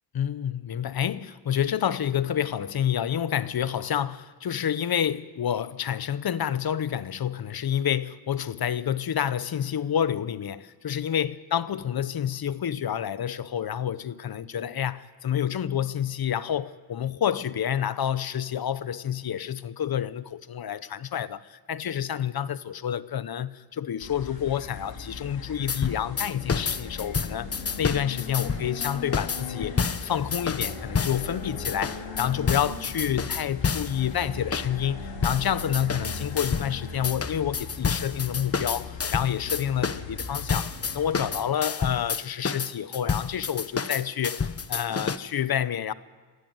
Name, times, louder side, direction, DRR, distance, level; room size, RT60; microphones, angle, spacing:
voice 1, 0.1-27.5 27.8-45.9, left 9 dB, 55° left, 1.0 m, -29 dB
sound 1, 24.0-41.4, left 4 dB, 85° left, 4.9 m, -39 dB
sound 2, 25.7-31.3 31.6-34.0 34.5-34.7 35.2-36.7 37.0-45.2, left 5 dB, 30° left, 1.1 m, -29 dB
25.5 x 15.5 x 9.4 m
cardioid pair, 80°, 44 cm